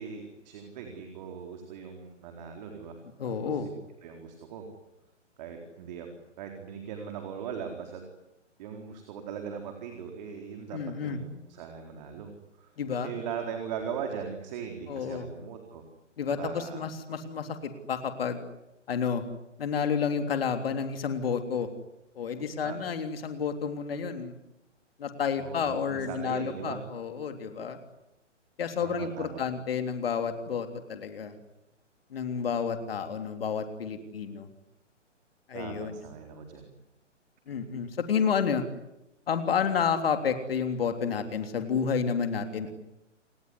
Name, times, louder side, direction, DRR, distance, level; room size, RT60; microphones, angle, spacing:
voice 1, 0.0-3.0 3.2-3.7 4.0-4.7 5.4-6.1 6.4-8.0 8.6-12.3 12.6-12.7 13.0-15.8 16.3-16.8 22.6-22.8 25.4-26.8 28.8-29.4 35.5-36.7, right 7 dB, 35° right, 4 dB, 4.2 m, -39 dB
voice 2, 3.2-3.7 10.7-11.2 12.8-13.1 14.9-15.3 16.2-18.4 18.9-19.2 19.6-21.7 22.1-24.4 25.0-27.8 28.6-31.3 32.1-34.5 35.5-36.0 37.5-38.6 39.3-42.7, left 6 dB, 50° left, 7 dB, 3.4 m, -30 dB
29.5 x 19.5 x 9.8 m, 0.87 s
figure-of-eight pair, 130°, 37 cm